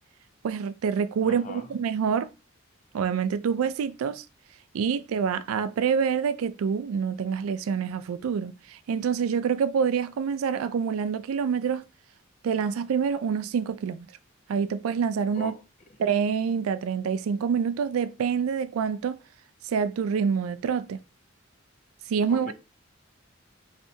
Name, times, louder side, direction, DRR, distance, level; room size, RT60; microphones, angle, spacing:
voice 1, 0.4-2.3 2.9-4.2 4.7-11.8 12.4-14.1 14.5-15.5 16.0-19.1 19.7-21.0 22.1-22.5, right 6 dB, 85° right, 0.3 m, -26 dB
voice 2, 1.2-1.7 15.3-15.6 22.3-22.5, left 2 dB, 40° left, 0.4 m, -39 dB
3.2 x 2.7 x 2.7 m
head